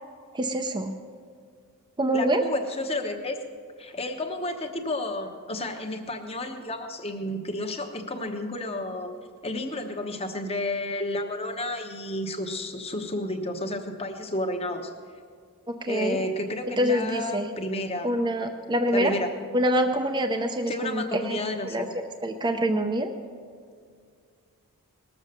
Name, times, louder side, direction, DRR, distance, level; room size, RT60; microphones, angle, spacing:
voice 1, 0.3-0.9 2.0-2.4 15.7-16.2 16.8-17.5 18.0-19.2 19.5-23.1, equal, 20° right, 4 dB, 0.6 m, -26 dB
voice 2, 2.1-3.4 3.8-9.1 9.4-14.9 15.9-18.1 18.9-19.3 20.7-21.8, left 1 dB, 25° left, 5 dB, 1.1 m, -31 dB
19.5 x 7.3 x 6.7 m, 2.1 s
head